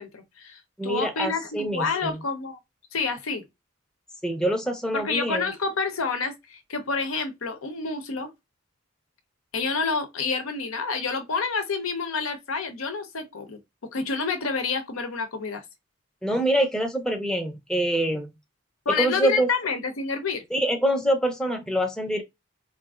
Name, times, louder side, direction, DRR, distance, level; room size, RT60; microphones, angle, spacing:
voice 1, 0.0-2.6 2.9-3.4 4.9-8.3 9.5-13.6 13.9-15.6 18.9-20.4, left 4 dB, 85° left, 0.7 m, -28 dB
voice 2, 0.8-2.2 4.2-5.5 16.2-18.3 18.9-19.5 20.5-22.2, right 1 dB, 5° left, 0.5 m, -25 dB
3.9 x 2.5 x 2.4 m
head